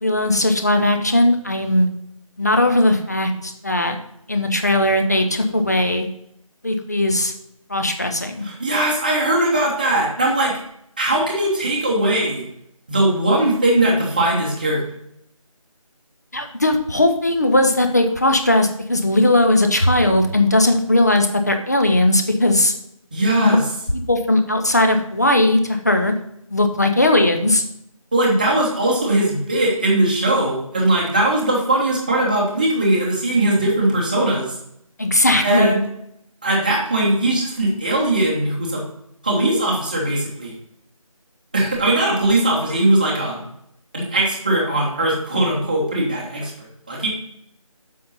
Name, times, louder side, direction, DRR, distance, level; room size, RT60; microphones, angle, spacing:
voice 1, 0.0-1.9 2.4-4.0 4.3-6.1 6.6-7.3 7.7-8.4 16.3-22.7 23.4-23.6 24.1-26.1 26.5-27.6 35.0-35.7, left 1 dB, 30° left, 6 dB, 0.6 m, -18 dB
voice 2, 8.4-10.6 11.0-12.4 12.9-14.8 23.1-23.6 28.1-34.6 35.4-35.8 36.4-38.8 39.2-40.5 41.5-43.4 43.9-47.1, right 1 dB, 15° right, -3 dB, 1.0 m, -20 dB
7.6 x 5.3 x 4.0 m, 0.74 s
figure-of-eight pair, 165°, 18 cm